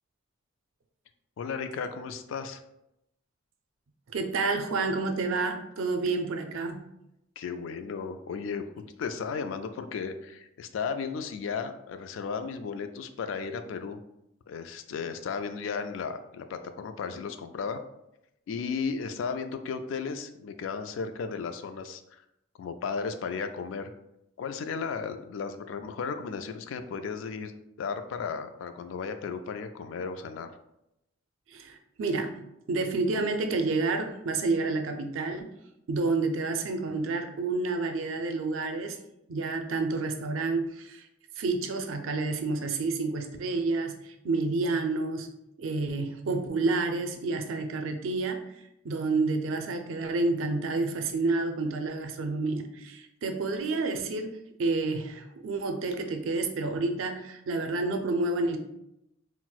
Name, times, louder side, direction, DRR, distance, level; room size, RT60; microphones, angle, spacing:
voice 1, 1.4-2.6 6.0-6.2 7.4-14.0 14.5-17.8 18.5-22.2 22.6-23.9 24.4-27.5 27.8-30.5, left 5 dB, 75° left, 8 dB, 0.3 m, -35 dB
voice 2, 4.1-6.9 31.5-32.4 32.7-35.5 35.9-39.0 39.3-41.0 41.4-45.3 45.6-48.5 48.8-58.6, right 3 dB, 85° right, 5 dB, 0.4 m, -29 dB
4.1 x 2.0 x 2.3 m, 0.84 s
head